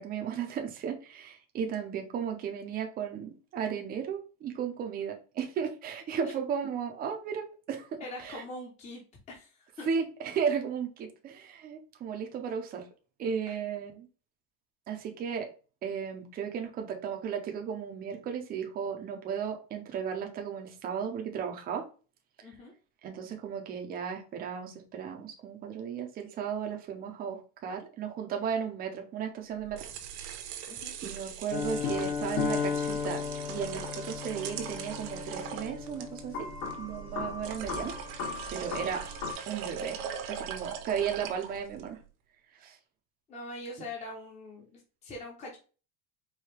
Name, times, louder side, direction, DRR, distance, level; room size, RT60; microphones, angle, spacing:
voice 1, 0.0-8.4 9.9-12.9 13.2-14.1 14.9-15.5 15.8-21.9 23.0-29.9 31.0-33.2 33.5-36.5 36.8-39.1 39.4-40.0 40.3-42.0 42.6-42.8, right 7 dB, 20° right, 3 dB, 0.5 m, -35 dB
voice 2, 8.0-9.0 9.3-9.9 13.5-13.6 22.4-22.7 30.7-31.0 43.3-45.6, left 2 dB, 15° left, -2 dB, 0.7 m, -43 dB
sound 1, 29.6-41.9, right 8 dB, 75° right, 1.0 m, -41 dB
sound 2, 31.5-39.3, left 5 dB, 65° left, 1.2 m, -35 dB
4.7 x 2.7 x 3.2 m, 0.36 s
cardioid pair, 170°, 45 cm